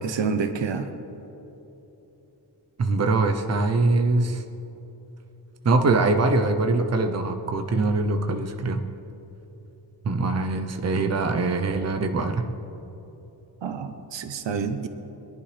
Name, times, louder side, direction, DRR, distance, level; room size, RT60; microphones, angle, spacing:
voice 1, 0.0-0.9 13.6-14.9, right 5 dB, 90° right, 9 dB, 0.9 m, -28 dB
voice 2, 2.8-4.4 5.6-8.8 10.0-12.4, right 3 dB, 35° right, 6 dB, 0.7 m, -23 dB
21.5 x 11.5 x 3.4 m, 3.0 s
wide cardioid pair, 155°, 43 cm